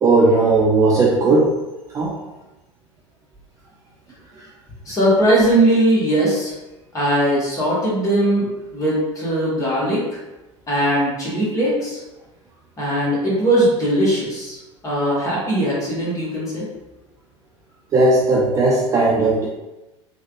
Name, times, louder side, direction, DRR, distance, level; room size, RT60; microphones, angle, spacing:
voice 1, 0.0-1.5 1.9-2.1 17.9-19.5, right 2 dB, 20° right, -3 dB, 0.3 m, -16 dB
voice 2, 4.9-6.5 6.9-8.5 8.7-10.2 10.7-12.0 12.8-14.6 14.8-16.6, right 1 dB, 20° left, -6 dB, 1.3 m, -19 dB
3.1 x 2.3 x 2.6 m, 1.0 s
figure-of-eight pair, 75°, 16 cm